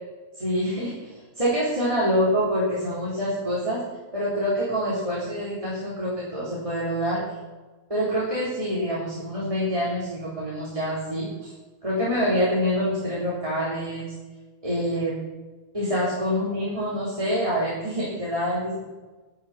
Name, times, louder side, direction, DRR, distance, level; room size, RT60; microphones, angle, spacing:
voice 1, 0.4-1.1 1.4-3.8 4.1-7.3 7.9-11.5 11.8-14.1 14.6-15.2 15.7-18.8, equal, 25° right, -7 dB, 3.6 m, -26 dB
11.5 x 11.5 x 5.7 m, 1.3 s
omnidirectional pair, 1.4 m